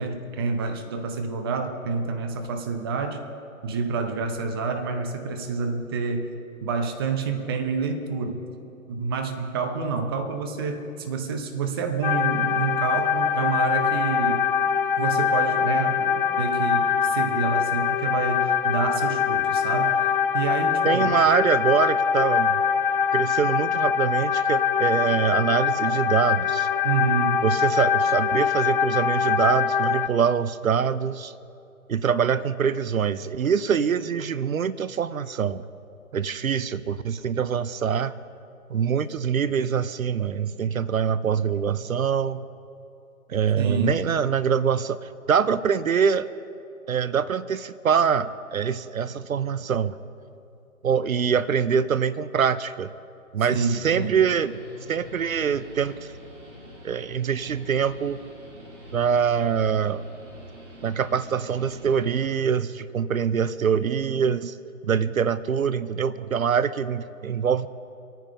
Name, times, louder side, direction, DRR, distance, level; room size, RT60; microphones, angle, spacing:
voice 1, 0.0-3.2 3.6-6.3 6.6-8.5 8.9-14.4 15.0-20.0 20.3-21.2 26.8-27.4 43.6-44.0 53.5-54.1, right 5 dB, 15° right, 6 dB, 0.7 m, -28 dB
sound 1, 12.0-30.1, left 7 dB, 40° left, 0.6 m, -23 dB
voice 2, 20.8-22.6 23.1-26.7 27.4-31.3 31.9-35.6 36.1-38.1 38.7-42.4 43.3-46.3 46.9-49.9 50.8-52.9 53.3-54.6 54.9-55.9 56.8-58.2 58.9-60.1 60.8-64.6 64.8-67.7, right 7 dB, 75° right, 16 dB, 0.7 m, -24 dB
Guitar, 53.8-62.4, left 1 dB, 60° right, 3.5 m, -46 dB
26.0 x 9.3 x 5.5 m, 2.7 s
figure-of-eight pair, 140°, 42 cm